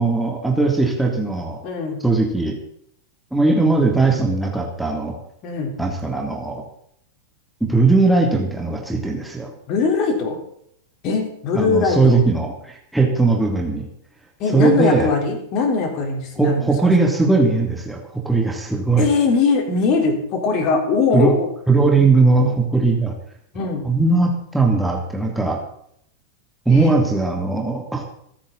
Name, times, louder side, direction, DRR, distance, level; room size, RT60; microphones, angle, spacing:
voice 1, 0.0-1.6 2.0-2.6 3.3-5.2 5.8-6.6 7.6-9.5 11.5-13.9 14.5-15.1 16.4-19.1 21.1-21.4 21.7-23.1 23.8-25.6 26.6-28.0, right 3 dB, 5° right, 0 dB, 3.0 m, -19 dB
voice 2, 1.6-2.0 5.4-5.7 9.7-10.4 11.0-12.2 14.4-16.9 19.0-21.5 23.5-23.9 26.7-27.0, left 4 dB, 40° left, 3 dB, 4.2 m, -21 dB
25.0 x 10.0 x 4.2 m, 0.69 s
figure-of-eight pair, 90°, 0 cm